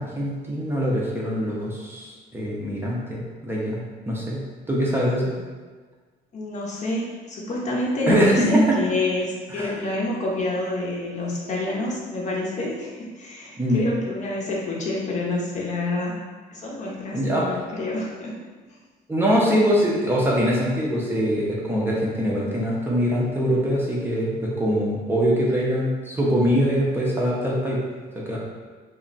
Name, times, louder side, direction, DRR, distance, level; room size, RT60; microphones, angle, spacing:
voice 1, 0.0-4.4 4.7-5.3 8.1-8.8 9.6-9.7 13.6-13.8 17.1-17.5 19.1-27.8 28.2-28.4, equal, 15° right, -5 dB, 0.5 m, -23 dB
voice 2, 4.8-5.3 6.3-16.1 16.5-18.4, left 1 dB, 45° left, -3 dB, 0.7 m, -27 dB
2.3 x 2.1 x 3.8 m, 1.4 s
cardioid pair, 110°, 17 cm